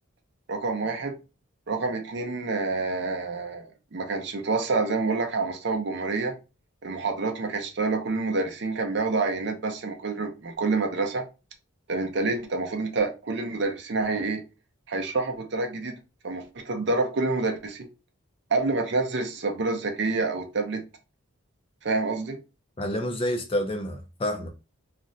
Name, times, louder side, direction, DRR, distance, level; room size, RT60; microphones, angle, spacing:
voice 1, 0.5-1.2 1.7-6.4 6.8-11.3 11.9-14.4 14.9-15.9 16.2-17.9 18.5-20.8 21.8-22.4, right 3 dB, 55° right, 0.5 m, -27 dB
voice 2, 22.8-24.5, left 1 dB, 25° left, 0.4 m, -28 dB
2.4 x 2.1 x 3.7 m
head